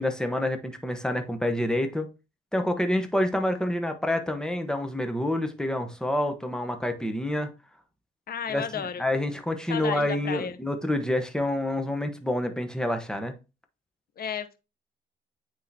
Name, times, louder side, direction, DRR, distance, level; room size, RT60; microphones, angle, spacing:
voice 1, 0.0-2.1 2.5-7.5 8.5-13.3, left 1 dB, 5° left, 1.1 m, -28 dB
voice 2, 8.3-9.0 9.7-10.6 14.2-14.6, left 7 dB, 50° left, 0.9 m, -33 dB
9.2 x 3.8 x 2.8 m
cardioid pair, 90°, 20 cm